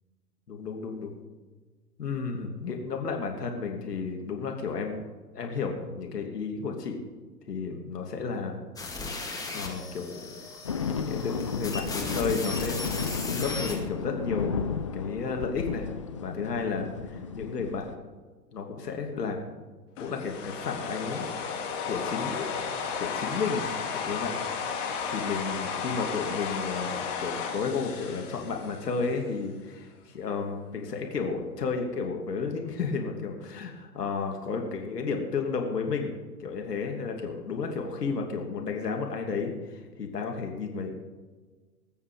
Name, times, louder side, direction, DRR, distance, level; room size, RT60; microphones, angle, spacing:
voice 1, 0.5-1.2 2.0-5.0 5.3-7.0 7.5-8.6 9.5-10.6 11.0-12.8 13.2-14.7 14.9-15.9 16.2-17.9 18.5-19.4 20.0-21.3 21.9-22.5 23.0-23.7 23.9-24.3 25.1-40.9, left 5 dB, 75° left, 2 dB, 3.0 m, -32 dB
sound 1, 8.8-13.8, left 3 dB, 5° left, 2.2 m, -36 dB
sound 2, 10.6-17.9, left 5 dB, 25° left, 0.3 m, -33 dB
sound 3, 20.0-29.2, left 6 dB, 50° left, 3.5 m, -34 dB
21.0 x 7.4 x 5.3 m, 1.4 s
hypercardioid pair, 115°, 48 cm